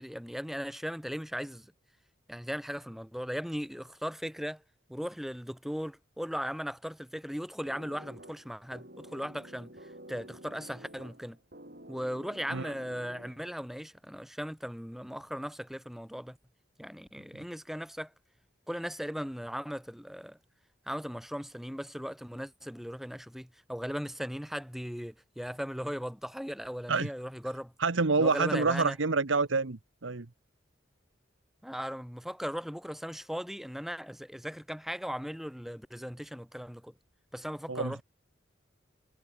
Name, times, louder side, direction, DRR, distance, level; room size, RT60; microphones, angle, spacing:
voice 1, 0.0-1.7 2.3-4.6 4.9-11.4 11.9-16.4 16.8-18.1 18.7-20.4 20.9-27.7 28.2-28.9 31.6-36.9 37.3-38.0, equal, ahead, 2.4 m, -38 dB
sound 1, 7.7-13.6, right 1 dB, 50° right, 6.4 m, -50 dB
voice 2, 27.8-30.3 37.7-38.0, right 4 dB, 85° right, 1.1 m, -27 dB
head